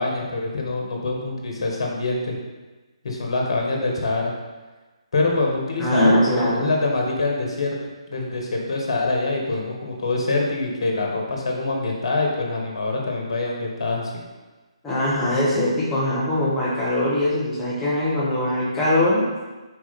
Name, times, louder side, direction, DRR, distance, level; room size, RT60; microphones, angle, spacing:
voice 1, 0.0-2.4 3.0-4.3 5.1-7.8 8.1-14.1, left 2 dB, 60° left, 0 dB, 1.5 m, -25 dB
voice 2, 5.8-6.7 14.8-19.3, left 1 dB, 10° left, -9 dB, 1.4 m, -21 dB
4.7 x 4.6 x 4.3 m, 1.2 s
figure-of-eight pair, 145°, 3 cm